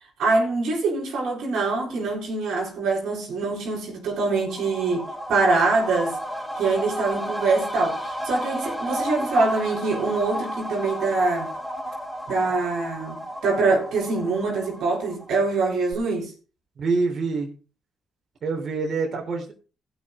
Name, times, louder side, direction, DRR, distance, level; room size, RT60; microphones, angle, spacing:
voice 1, 0.2-6.2 6.6-11.5 12.3-16.3, right 3 dB, 75° right, 4.1 m, -24 dB
sound 1, 4.1-15.6 15.9-16.0, equal, ahead, 2.8 m, -33 dB
voice 2, 16.8-17.5 18.4-19.5, right 4 dB, 55° right, 3.7 m, -26 dB
15.5 x 6.2 x 5.1 m
supercardioid pair, 60°, 0 cm